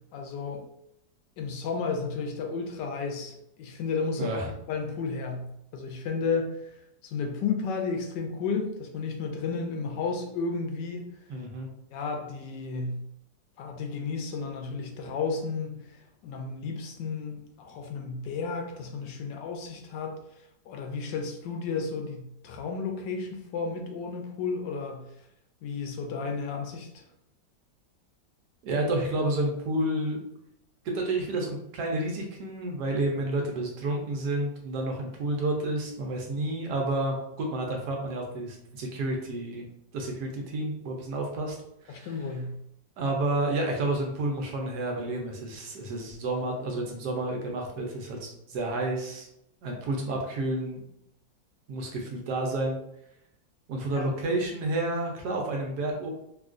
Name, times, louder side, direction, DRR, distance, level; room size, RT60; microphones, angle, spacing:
voice 1, 0.1-0.6 1.4-4.3 4.7-5.5 5.7-6.7 7.0-11.1 11.9-13.0 13.6-20.2 20.7-25.0 25.6-27.0 41.9-42.5 53.9-54.1, left 4 dB, 75° left, 3 dB, 1.2 m, -33 dB
voice 2, 4.1-4.5 11.3-11.7 28.6-30.2 30.8-39.7 39.9-41.6 41.8-42.1 43.0-49.3 49.6-50.8 51.7-52.8 53.7-56.1, right 2 dB, 70° right, 1 dB, 1.1 m, -30 dB
3.6 x 2.4 x 2.4 m, 0.76 s
omnidirectional pair, 2.0 m